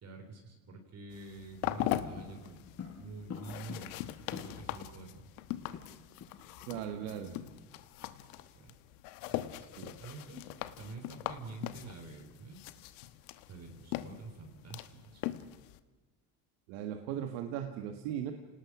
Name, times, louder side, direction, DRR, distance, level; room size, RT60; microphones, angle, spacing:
voice 1, 0.0-2.7 3.0-3.9 4.3-5.2 7.0-7.7 8.4-8.7 9.2-9.7 10.0-10.4 10.8-12.6 13.5-15.4, right 3 dB, 35° right, 4 dB, 3.6 m, -48 dB
sound 1, 1.1-15.8, left 14 dB, 75° left, 1.3 m, -41 dB
sound 2, 2.2-4.8 5.1-5.2 5.4-6.5 6.7-6.9 7.3-7.5, left 6 dB, 35° left, 7.2 m, -47 dB
voice 2, 6.6-7.3 9.8-9.9 16.7-18.3, right 10 dB, 75° right, 5 dB, 1.8 m, -38 dB
28.5 x 19.0 x 6.1 m, 1.2 s
supercardioid pair, 110°, 44 cm